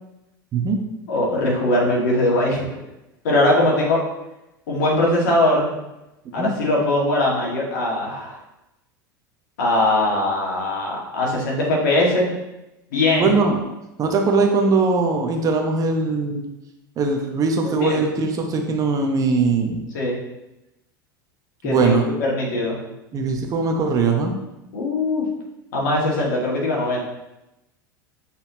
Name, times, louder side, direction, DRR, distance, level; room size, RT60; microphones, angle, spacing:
voice 1, 1.1-2.8 3.2-4.0 4.7-5.7 6.3-8.4 9.6-12.3 12.9-13.4 17.6-18.0 19.9-20.2 21.6-21.9 22.2-22.8 24.7-25.3 25.7-27.0, left 1 dB, 60° left, -3 dB, 2.1 m, -21 dB
voice 2, 13.1-13.6 14.0-16.4 17.0-19.8 21.6-22.0 23.1-24.4, right 4 dB, 30° right, 2 dB, 1.0 m, -20 dB
7.6 x 4.2 x 3.0 m, 0.93 s
figure-of-eight pair, 80°, 11 cm